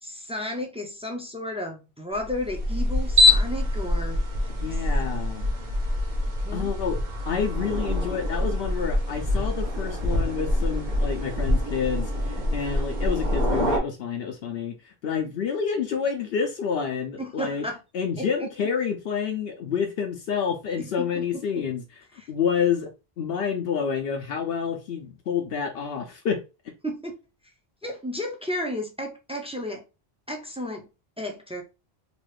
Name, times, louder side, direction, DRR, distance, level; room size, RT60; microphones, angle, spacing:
voice 1, 0.0-4.2 6.4-6.7 17.2-17.8 18.2-18.5 20.8-21.2 21.6-21.7 22.2-22.3 26.8-27.1 27.8-29.8 30.3-30.9 31.2-31.6, left 1 dB, 10° right, 0.5 m, -33 dB
sound 1, 2.2-13.8, left 1 dB, 50° right, 0.9 m, -25 dB
voice 2, 4.6-5.4 6.5-17.7 17.9-26.4, left 6 dB, 70° left, 0.8 m, -28 dB
3.0 x 2.4 x 3.2 m
omnidirectional pair, 1.0 m